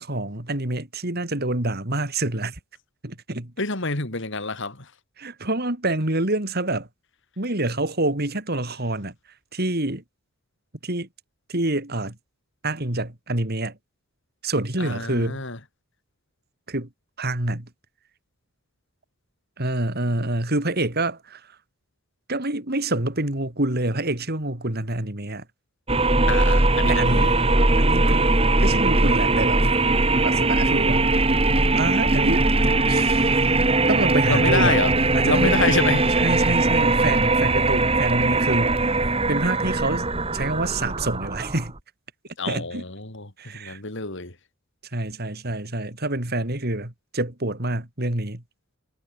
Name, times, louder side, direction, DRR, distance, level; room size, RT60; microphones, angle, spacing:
voice 1, 0.0-2.6 3.0-3.5 5.2-6.9 7.4-9.1 9.5-10.0 10.8-11.1 11.5-12.2 12.6-13.8 14.4-15.4 16.7-16.9 17.2-17.7 19.6-21.5 22.3-25.4 26.9-27.3 27.8-28.3 28.6-29.7 30.2-31.1 31.7-32.5 32.9-33.5 33.9-34.8 35.1-35.6 36.2-39.0 39.3-40.1 40.3-41.7 42.4-42.8 43.4-43.8 44.9-48.4, right 2 dB, 50° right, 3.4 m, -27 dB
voice 2, 3.6-4.9 14.8-15.6 26.3-27.3 34.3-34.9 35.2-36.1 42.4-44.3, left 3 dB, 60° left, 3.3 m, -27 dB
sound 1, 25.9-41.8, right 2 dB, 25° right, 2.5 m, -20 dB
head